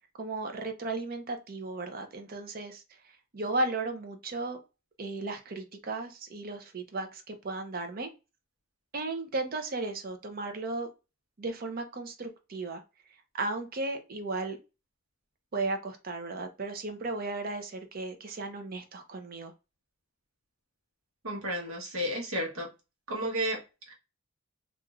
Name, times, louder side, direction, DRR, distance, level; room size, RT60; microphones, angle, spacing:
voice 1, 0.2-2.8 3.3-4.6 5.0-8.1 8.9-10.9 11.4-12.8 13.3-14.6 15.5-19.5, right 2 dB, 45° right, 0.5 m, -35 dB
voice 2, 21.2-22.7 23.1-23.9, equal, 85° right, 1.0 m, -32 dB
3.0 x 2.4 x 2.3 m
head